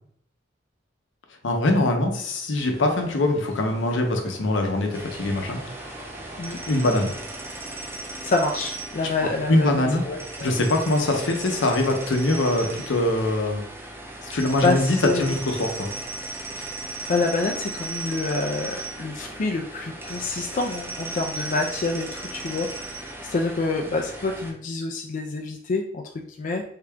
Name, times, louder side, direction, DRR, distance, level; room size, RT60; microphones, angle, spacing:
voice 1, 1.4-5.6 6.7-7.2 9.2-10.0 10.4-13.6 14.2-15.9, left 2 dB, 75° left, 3 dB, 0.7 m, -23 dB
sound 1, 2.5-7.9, right 1 dB, 35° right, 0.8 m, -46 dB
sound 2, 4.9-24.5, right 2 dB, 10° right, 0.5 m, -36 dB
voice 2, 8.2-10.5 14.3-15.4 16.6-26.6, left 3 dB, 45° left, 2 dB, 0.3 m, -27 dB
3.6 x 2.2 x 3.5 m, 0.65 s
head